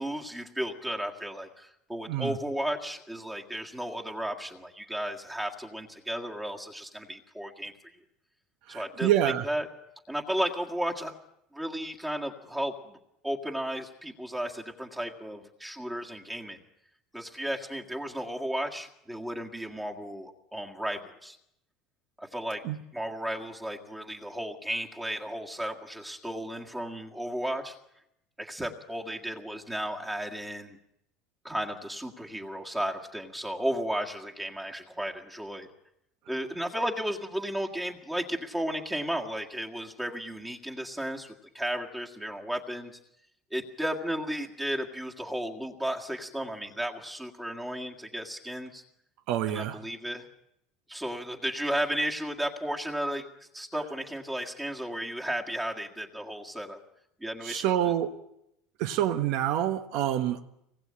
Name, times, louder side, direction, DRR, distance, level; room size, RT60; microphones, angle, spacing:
voice 1, 0.0-7.7 8.7-9.7 10.1-11.1 11.5-13.0 13.2-16.6 17.1-21.4 22.2-22.6 22.9-27.8 28.4-30.8 31.4-35.7 36.3-42.9 43.5-48.8 49.5-50.3 50.9-56.8 57.2-57.9, equal, 5° right, 1 dB, 1.8 m, -34 dB
voice 2, 8.7-9.4 22.6-22.8 49.3-49.8 57.4-58.2 58.8-60.5, right 11 dB, 50° right, 9 dB, 1.2 m, -27 dB
25.5 x 20.0 x 8.7 m, 0.79 s
cardioid pair, 175°, 0 cm